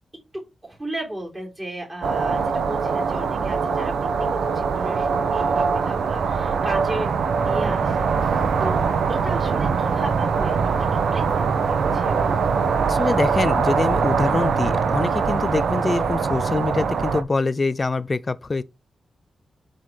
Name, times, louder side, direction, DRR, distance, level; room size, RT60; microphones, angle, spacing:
voice 1, 0.6-12.6, right 1 dB, 15° right, 3.7 m, -35 dB
sound 1, 2.0-17.2, right 5 dB, 75° right, 1.0 m, -22 dB
voice 2, 12.9-18.6, left 3 dB, 25° left, 0.5 m, -24 dB
8.1 x 4.0 x 4.7 m
wide cardioid pair, 170°, 0 cm